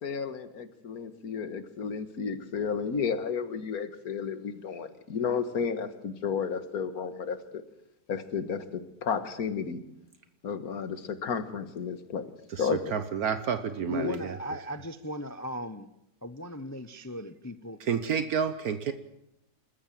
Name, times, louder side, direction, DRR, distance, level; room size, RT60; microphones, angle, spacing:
voice 1, 0.0-7.6 8.1-9.8 10.4-12.3 12.6-12.8 13.9-14.1, left 6 dB, 70° left, 10 dB, 1.9 m, -32 dB
voice 2, 12.5-14.4 17.8-18.9, right 7 dB, 70° right, 10 dB, 1.4 m, -30 dB
voice 3, 13.9-15.9 16.2-17.8, equal, 20° left, 12 dB, 0.4 m, -38 dB
28.0 x 13.5 x 7.5 m, 0.85 s
omnidirectional pair, 1.7 m